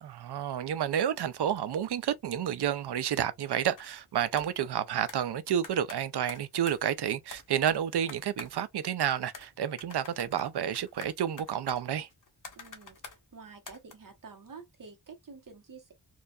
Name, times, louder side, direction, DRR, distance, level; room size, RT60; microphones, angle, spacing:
voice 1, 0.0-12.1, right 9 dB, 65° right, 0.5 m, -30 dB
sound 1, 3.8-3.9 4.4-4.6 5.1-5.2 5.6-6.8 7.3-8.7 9.0-9.5 9.8-13.2 13.7-13.9, left 4 dB, 45° left, 1.1 m, -47 dB
voice 2, 12.5-15.9, right 5 dB, 50° right, 1.1 m, -49 dB
4.4 x 2.5 x 2.3 m
wide cardioid pair, 125°, 42 cm